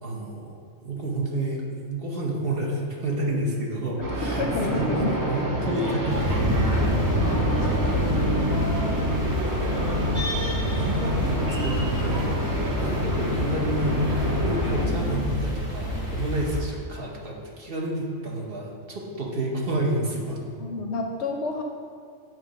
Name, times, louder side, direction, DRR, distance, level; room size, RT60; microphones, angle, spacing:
voice 1, 0.0-4.4 4.7-6.5 10.1-12.4 12.8-14.0 14.4-20.4, right 1 dB, 45° right, -2 dB, 1.1 m, -30 dB
sound 1, 4.0-14.9, right 1 dB, 25° right, 0.5 m, -27 dB
voice 2, 4.2-5.2 7.6-7.8 20.6-21.6, left 3 dB, 65° left, 2 dB, 0.8 m, -29 dB
sound 2, 6.1-16.6, left 1 dB, 70° right, 2.3 m, -28 dB
9.0 x 3.1 x 5.1 m, 2.1 s
omnidirectional pair, 1.4 m